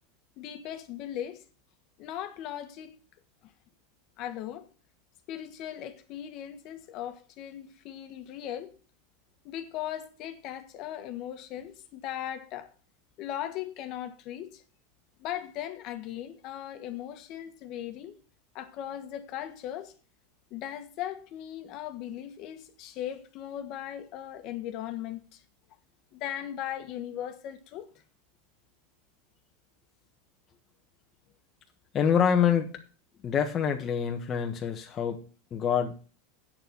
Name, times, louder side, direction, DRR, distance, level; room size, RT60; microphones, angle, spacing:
voice 1, 0.4-1.4 2.0-2.9 4.2-4.7 5.3-8.7 9.4-12.7 13.2-14.6 15.2-18.2 18.5-19.9 20.5-25.4 26.1-27.9, left 11 dB, 50° left, 1.5 m, -38 dB
voice 2, 31.9-32.7 33.2-35.2 35.5-35.9, left 8 dB, 30° left, 1.3 m, -26 dB
8.8 x 6.9 x 6.8 m
supercardioid pair, 125°, 0 cm